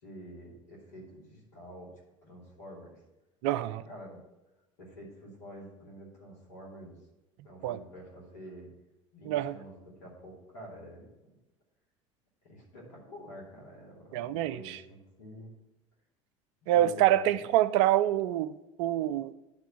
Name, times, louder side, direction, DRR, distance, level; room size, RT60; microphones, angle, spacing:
voice 1, 0.0-1.9 2.2-3.0 3.8-4.2 4.8-7.0 7.4-8.7 9.1-11.1 12.4-15.5 16.6-17.4, equal, 75° left, 2.6 m, -48 dB
voice 2, 3.4-3.8 7.6-7.8 9.3-9.6 14.1-14.8 16.7-19.3, right 12 dB, 65° right, 0.4 m, -26 dB
9.9 x 3.4 x 5.8 m
hypercardioid pair, 70°, 16 cm